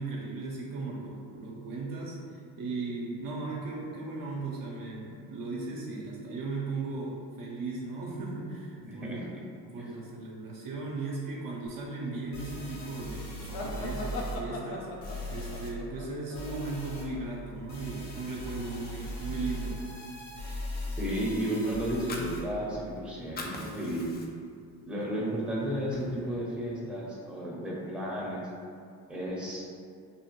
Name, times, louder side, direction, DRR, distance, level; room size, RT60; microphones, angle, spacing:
voice 1, 0.0-9.4 9.7-19.8, right 3 dB, 45° right, -3 dB, 0.6 m, -37 dB
voice 2, 8.8-9.3 9.8-9.9 20.9-24.1 24.8-28.4 29.1-29.7, equal, ahead, -5 dB, 0.7 m, -33 dB
sound 1, 12.3-14.4 15.0-15.7 16.3-17.0 17.7-22.4, equal, 55° left, 1.1 m, -39 dB
sound 2, 13.5-17.2, left 1 dB, 75° left, 0.6 m, -39 dB
Fire, 22.1-23.0 23.2-24.6 25.0-25.2 25.5-26.5, left 2 dB, 25° left, 0.3 m, -42 dB
2.6 x 2.0 x 2.9 m, 2.3 s
hypercardioid pair, 55°, 47 cm